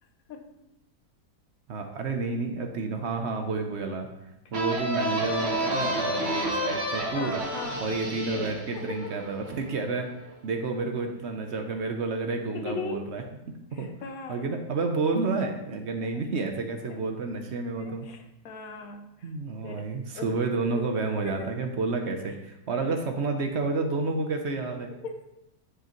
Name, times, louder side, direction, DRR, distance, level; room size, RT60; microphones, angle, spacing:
voice 1, 1.7-4.1 4.5-7.4 7.8-10.1 10.4-13.9 14.3-18.1 19.2-24.9, right 3 dB, 55° right, 4 dB, 0.7 m, -30 dB
sound 1, 4.5-10.0, right 1 dB, 40° right, 1.6 m, -30 dB
voice 2, 7.1-7.9 8.7-9.1 12.5-13.1 13.7-14.4 16.9-17.0 17.8-19.3 19.6-19.9 20.1-20.3 20.7-20.8 21.2-21.5 22.7-22.8 25.0-25.2, left 4 dB, 60° left, 5 dB, 1.2 m, -38 dB
11.0 x 5.0 x 3.0 m, 0.89 s
omnidirectional pair, 1.9 m